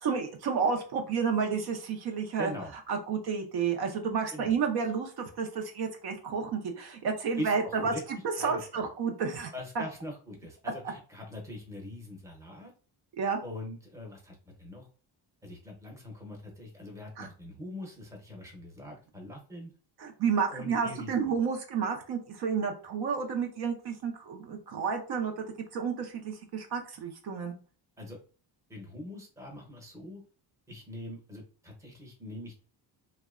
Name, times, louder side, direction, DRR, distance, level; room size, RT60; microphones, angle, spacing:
voice 1, 0.0-2.5 2.9-7.9 8.4-9.8 13.2-13.4 17.2-17.3 20.0-25.5 25.7-27.5, right 6 dB, 60° right, 3 dB, 0.6 m, -31 dB
voice 2, 2.4-2.7 4.3-4.5 7.4-8.0 8.4-8.6 9.5-12.7 13.4-14.9 15.4-19.7 20.5-21.3 28.0-28.2 28.7-30.2 30.7-32.6, left 1 dB, 5° right, 0 dB, 0.7 m, -42 dB
2.7 x 2.1 x 2.4 m, 0.38 s
cardioid pair, 140°, 43 cm